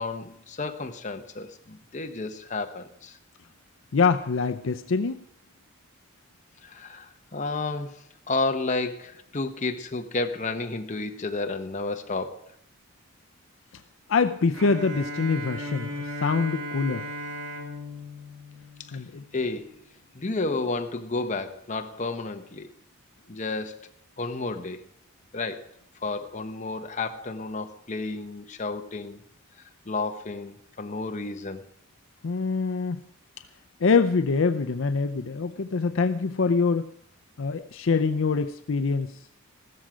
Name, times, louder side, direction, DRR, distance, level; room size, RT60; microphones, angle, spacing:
voice 1, 0.0-3.2 6.6-12.4 18.8-18.9 19.3-19.8 20.1-22.7 23.3-23.9 24.2-24.8 25.3-25.7 26.0-29.2 29.9-31.7, left 3 dB, 35° left, 0.9 m, -31 dB
voice 2, 3.9-5.2 14.1-15.9 16.2-17.1 18.9-19.2 32.2-33.0 33.8-36.9 37.4-39.1, left 4 dB, 60° left, 0.5 m, -24 dB
Bowed string instrument, 14.5-19.5, equal, 80° right, 2.9 m, -36 dB
15.0 x 13.5 x 5.0 m
head